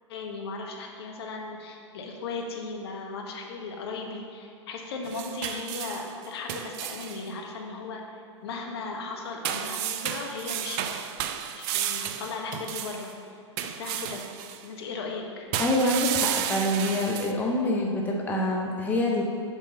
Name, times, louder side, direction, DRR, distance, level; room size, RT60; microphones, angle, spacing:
voice 1, 0.1-10.9 11.5-14.2 14.6-15.5, left 3 dB, 55° left, 1 dB, 1.2 m, -37 dB
sound 1, 5.0-7.2 9.4-13.1 13.6-14.6 15.5-17.3, right 10 dB, 35° right, 0.4 m, -32 dB
voice 2, 15.6-19.2, left 1 dB, 10° left, -1 dB, 0.7 m, -26 dB
6.3 x 5.4 x 5.4 m, 2.4 s
figure-of-eight pair, 110°, 16 cm